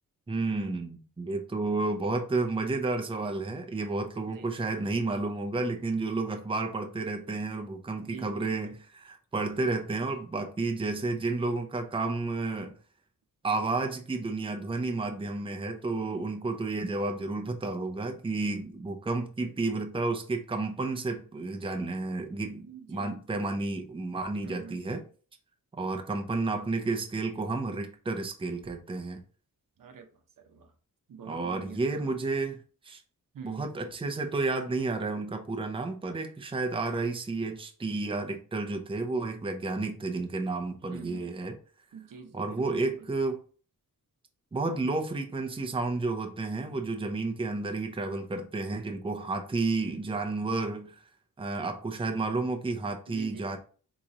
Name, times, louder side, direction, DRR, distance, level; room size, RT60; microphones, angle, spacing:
voice 1, 0.3-12.7 13.4-25.0 25.7-29.2 31.3-32.6 32.8-33.0 33.4-41.6 42.3-43.4 44.5-51.0 51.4-53.6, right 3 dB, 15° right, 0.6 m, -31 dB
voice 2, 8.0-8.7 16.1-16.2 19.5-19.6 22.7-23.2 24.4-24.9 29.8-30.7 31.1-32.1 33.3-33.7 40.9-41.3 41.9-43.1 53.1-53.5, right 6 dB, 70° right, 0.8 m, -46 dB
4.1 x 3.0 x 3.8 m
wide cardioid pair, 110°, 34 cm